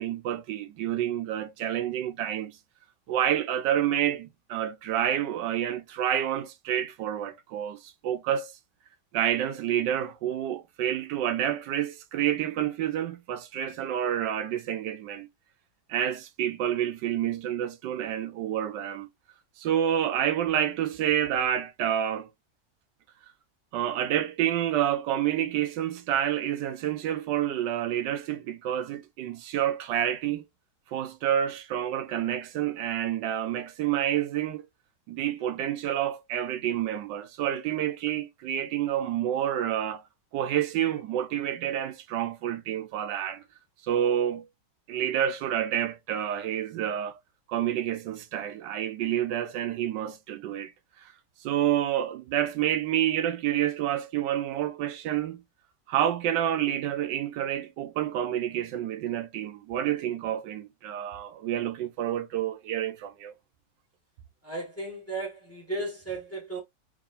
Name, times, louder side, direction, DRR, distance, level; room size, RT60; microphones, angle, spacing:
voice 1, 0.0-2.6 3.1-8.5 9.1-15.3 15.9-19.1 19.6-22.3 23.7-30.4 30.9-34.7 35.1-40.0 40.3-43.4 43.9-44.5 44.9-47.2 47.5-50.7 51.4-55.4 55.9-63.3, right 10 dB, 85° right, 1.3 m, -28 dB
voice 2, 64.4-66.6, right 2 dB, 10° left, 1.4 m, -35 dB
3.6 x 3.4 x 2.6 m
omnidirectional pair, 1.9 m